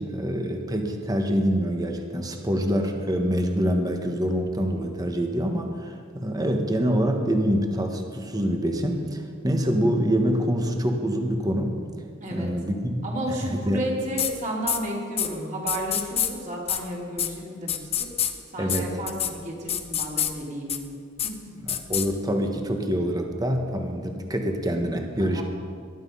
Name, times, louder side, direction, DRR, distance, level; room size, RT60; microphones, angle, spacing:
voice 1, 0.0-11.8 12.3-13.8 18.6-18.9 21.6-25.4, equal, 20° right, 3 dB, 1.4 m, -25 dB
voice 2, 13.0-20.9 21.2-21.5 25.3-25.4, right 1 dB, 40° right, -3 dB, 3.7 m, -32 dB
sound 1, 14.2-14.3 14.7-14.8 15.2-15.3 15.7-16.3 16.7-16.8 17.2-17.3 17.7-18.3 18.7-18.8 19.1-19.3 19.7-20.3 20.7-20.8 21.2-21.3 21.7-22.1, left 10 dB, 30° left, 0.9 m, -25 dB
20.0 x 12.5 x 5.6 m, 2.1 s
head